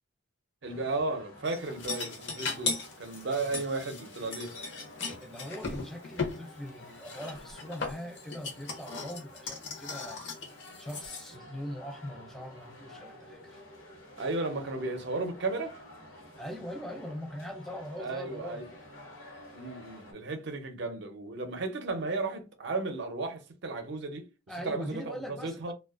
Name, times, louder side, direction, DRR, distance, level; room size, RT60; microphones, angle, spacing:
sound 1, 0.6-20.1, left 1 dB, 80° left, 0.9 m, -51 dB
voice 1, 0.6-4.5 14.2-15.8 18.0-18.6 19.5-24.3 24.7-25.7, right 3 dB, 60° right, 0.5 m, -34 dB
sound 2, 1.4-6.4 7.0-11.3, left 4 dB, 60° left, 0.6 m, -37 dB
voice 2, 3.3-3.6 5.2-10.2 10.8-13.6 16.4-18.6 24.5-25.7, equal, ahead, 0.3 m, -41 dB
2.4 x 2.1 x 2.3 m
head